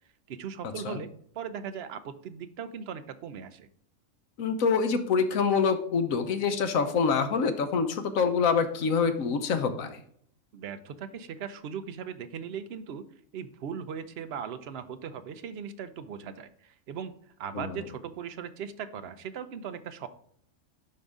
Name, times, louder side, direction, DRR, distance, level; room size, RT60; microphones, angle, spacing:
voice 1, 0.3-3.7 10.5-13.0 13.3-17.1 17.4-20.1, right 7 dB, 60° right, 11 dB, 0.8 m, -39 dB
voice 2, 4.4-10.0 17.5-17.8, left 5 dB, 90° left, 9 dB, 1.3 m, -26 dB
11.0 x 3.9 x 3.6 m, 0.66 s
omnidirectional pair, 1.4 m